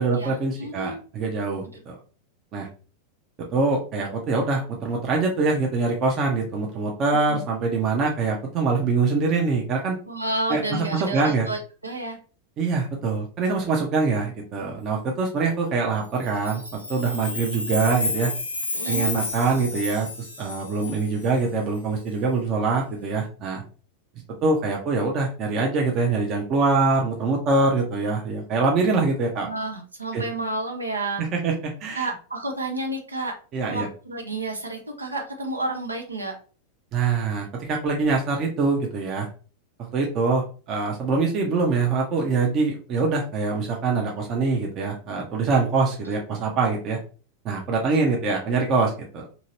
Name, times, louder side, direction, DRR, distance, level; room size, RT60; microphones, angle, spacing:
voice 1, 0.0-2.0 2.5-2.7 3.5-10.0 10.5-11.5 12.6-18.3 18.8-20.1 20.4-23.6 24.4-29.5 30.1-30.2 31.2-32.1 33.5-33.9 36.9-39.3 39.8-47.0 47.4-49.3, right 4 dB, 35° right, 0 dB, 0.7 m, -24 dB
voice 2, 0.6-1.0 7.1-7.4 10.1-12.2 18.7-19.1 29.4-31.2 31.9-33.3 33.7-36.4, right 2 dB, 80° right, 2 dB, 0.7 m, -30 dB
Chime, 16.1-21.3, left 2 dB, 80° left, 0.8 m, -31 dB
2.8 x 2.7 x 2.8 m, 0.37 s
figure-of-eight pair, 90°, 0 cm